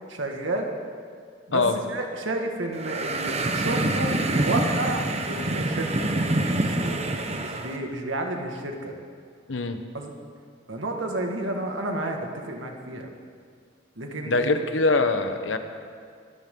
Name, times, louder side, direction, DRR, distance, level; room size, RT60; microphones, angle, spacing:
voice 1, 0.1-0.7 1.5-6.1 6.4-8.9 9.9-10.1 10.7-13.1 14.0-14.5 15.5-15.6, right 2 dB, 85° right, 2 dB, 2.0 m, -31 dB
sound 1, 2.7-7.8, right 2 dB, 35° right, 1.0 m, -26 dB
voice 2, 9.5-9.8 14.3-15.6, left 3 dB, 80° left, 7 dB, 1.1 m, -23 dB
24.0 x 13.5 x 3.9 m, 2.1 s
head